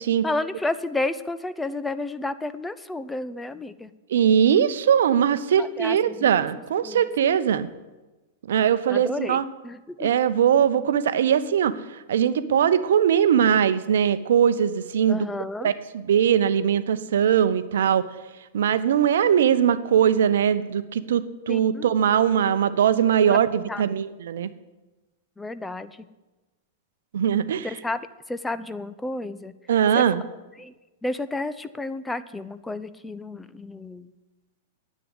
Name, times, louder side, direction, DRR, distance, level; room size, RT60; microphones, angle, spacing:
voice 1, 0.2-3.9 5.6-6.3 6.8-7.1 8.9-10.1 15.1-15.7 21.5-21.9 23.3-23.4 23.7-23.8 25.4-26.1 27.6-28.0 28.3-29.5 29.9-30.0 30.6-30.7 31.0-34.1, left 2 dB, 10° left, 12 dB, 0.7 m, -31 dB
voice 2, 4.1-7.7 8.5-9.4 10.0-11.7 12.1-15.3 15.6-18.1 18.5-24.5 27.1-27.7 29.7-30.2, right 8 dB, 65° right, 12 dB, 0.8 m, -21 dB
10.0 x 8.4 x 9.8 m, 1.1 s
figure-of-eight pair, 100°, 0 cm